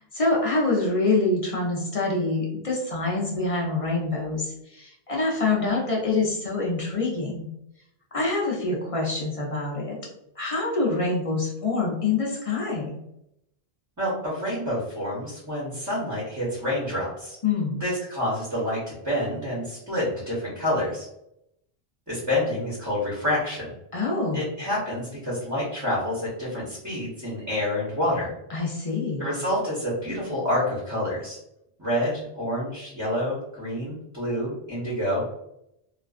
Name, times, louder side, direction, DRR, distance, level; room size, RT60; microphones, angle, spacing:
voice 1, 0.0-7.5 8.1-10.0 10.4-13.0 17.4-17.8 23.9-24.4 28.5-29.3, left 3 dB, 45° left, -3 dB, 0.5 m, -26 dB
voice 2, 14.0-17.4 17.8-21.1 22.1-23.7 24.3-28.3 29.2-31.4 31.8-35.3, left 1 dB, 20° right, -7 dB, 0.7 m, -28 dB
2.4 x 2.2 x 2.3 m, 0.80 s
omnidirectional pair, 1.1 m